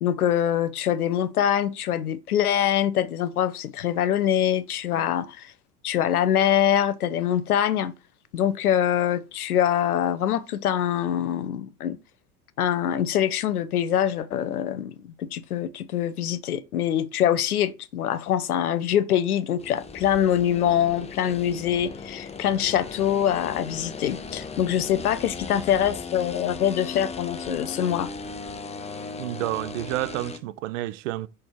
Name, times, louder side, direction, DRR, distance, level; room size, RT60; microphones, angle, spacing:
voice 1, 0.0-5.5 5.8-7.9 8.3-12.0 12.6-28.1, left 10 dB, 80° left, 0.8 m, -24 dB
sound 1, 19.6-30.4, left 5 dB, 15° left, 0.8 m, -37 dB
voice 2, 29.2-31.3, right 15 dB, 60° right, 0.6 m, -30 dB
6.2 x 4.3 x 4.5 m
hypercardioid pair, 85°, 44 cm